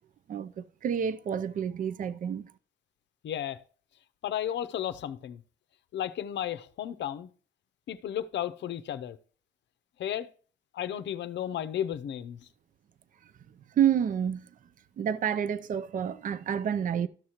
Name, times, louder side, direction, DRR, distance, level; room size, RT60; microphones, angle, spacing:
voice 1, 0.3-2.5 13.8-14.5 15.0-17.1, right 8 dB, 45° right, 0.5 m, -29 dB
voice 2, 3.2-3.6 4.2-5.4 5.9-7.3 7.9-9.2 10.0-10.3 10.7-12.4, left 10 dB, 65° left, 0.6 m, -33 dB
13.0 x 6.3 x 2.9 m
cardioid pair, 90°, 20 cm